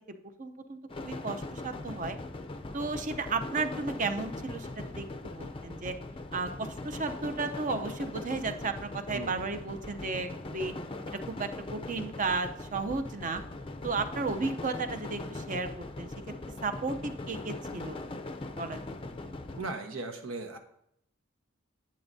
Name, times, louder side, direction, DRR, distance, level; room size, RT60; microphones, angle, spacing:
voice 1, 0.4-2.2 2.7-5.9 6.3-10.7 11.3-13.4 13.8-16.1 16.6-18.0 18.6-18.8, right 4 dB, 40° right, 8 dB, 0.7 m, -34 dB
sound 1, 0.9-19.7, left 2 dB, 25° left, 0.5 m, -40 dB
voice 2, 9.1-9.5 19.6-20.6, right 3 dB, 80° right, 5 dB, 1.2 m, -37 dB
10.5 x 8.9 x 2.7 m, 0.72 s
head